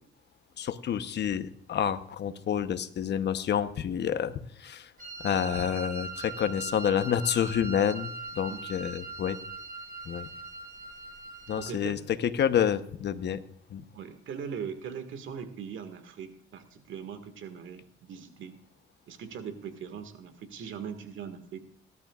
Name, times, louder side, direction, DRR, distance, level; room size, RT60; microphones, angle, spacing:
voice 1, 0.6-4.3 4.6-4.9 5.2-9.4 10.0-10.3 11.5-13.4 13.7-13.8, left 9 dB, 60° left, 11 dB, 0.9 m, -28 dB
Wind instrument woodwind instrument, 5.0-11.7, right 3 dB, 45° right, 3.1 m, -40 dB
voice 2, 8.5-8.8 11.5-12.0 13.9-18.6 19.1-21.6, right 7 dB, 75° right, 9 dB, 1.9 m, -40 dB
19.0 x 12.0 x 2.4 m, 0.64 s
cardioid pair, 90°, 20 cm